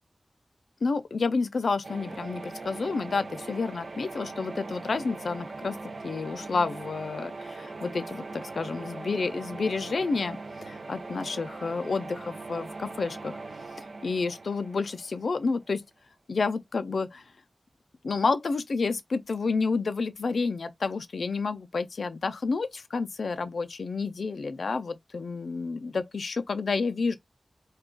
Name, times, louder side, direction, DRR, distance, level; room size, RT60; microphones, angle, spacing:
voice 1, 0.8-13.4 14.0-15.8 16.3-17.2 18.0-27.1, left 4 dB, 85° left, 0.4 m, -30 dB
sound 1, 1.8-15.7, right 3 dB, 70° right, 0.4 m, -41 dB
2.3 x 2.3 x 3.6 m
wide cardioid pair, 60°, 0 cm